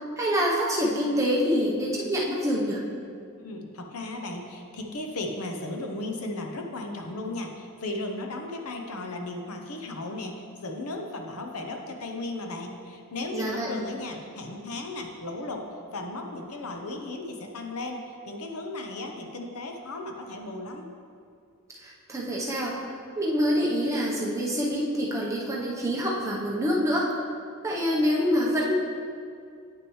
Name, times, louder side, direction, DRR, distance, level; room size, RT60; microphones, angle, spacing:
voice 1, 0.2-2.8 13.3-13.7 21.8-22.7 23.2-27.1 27.6-28.7, equal, 15° right, -4 dB, 0.8 m, -26 dB
voice 2, 3.4-15.7 15.9-20.9, left 2 dB, 75° left, 3 dB, 0.8 m, -35 dB
8.9 x 6.1 x 3.1 m, 2.3 s
head